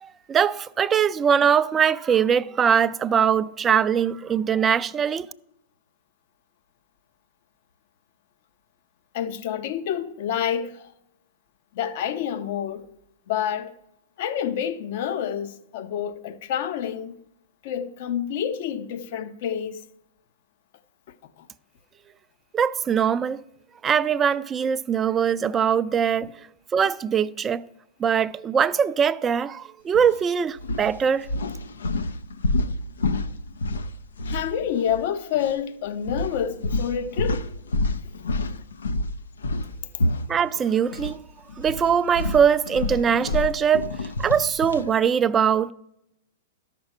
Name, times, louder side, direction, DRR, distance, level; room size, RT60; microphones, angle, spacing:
voice 1, 0.0-5.3 22.5-23.4 23.8-26.3 26.7-27.6 28.0-31.3 40.3-41.2 41.6-43.9 44.2-45.7, right 7 dB, 20° right, 0.4 m, -22 dB
voice 2, 9.1-10.9 11.7-12.9 13.3-13.7 14.2-17.2 17.6-19.8 21.1-21.5 26.2-26.3 34.3-37.4, left 9 dB, 55° left, 0.7 m, -28 dB
sound 1, 29.9-30.1 30.6-35.1 35.3-35.5 36.1-41.2 41.5-44.9, left 2 dB, 90° left, 0.6 m, -28 dB
13.0 x 6.0 x 5.4 m
hypercardioid pair, 125°, 0 cm